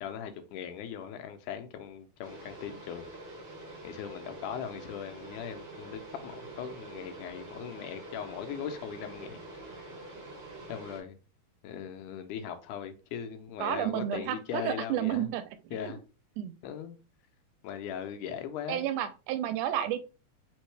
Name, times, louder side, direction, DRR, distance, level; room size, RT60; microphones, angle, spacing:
voice 1, 0.0-3.1 3.8-9.4 9.8-9.9 10.7-11.2 11.6-15.3 15.7-16.0 16.6-17.0 17.6-18.8, left 8 dB, 80° left, 2.1 m, -39 dB
sound 1, 2.2-11.0, right 2 dB, 25° right, 1.2 m, -46 dB
voice 2, 13.6-15.4 16.4-16.5 18.7-20.0, right 11 dB, 80° right, 2.0 m, -31 dB
4.4 x 3.6 x 3.2 m
omnidirectional pair, 3.6 m